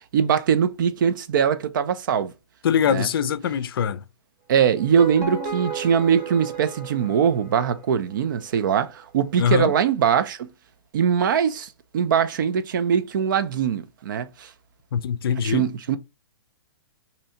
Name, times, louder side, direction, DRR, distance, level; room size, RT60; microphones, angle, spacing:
voice 1, 0.1-2.3 2.9-3.1 4.5-10.5 10.9-11.7 11.9-14.5 15.4-16.0, right 7 dB, 50° right, 0.4 m, -22 dB
voice 2, 2.6-4.0 9.4-9.7 14.9-15.7, left 8 dB, 60° left, 0.4 m, -23 dB
sound 1, 4.8-7.9, right 6 dB, 30° right, 0.9 m, -33 dB
2.7 x 2.6 x 4.2 m
hypercardioid pair, 165°, 14 cm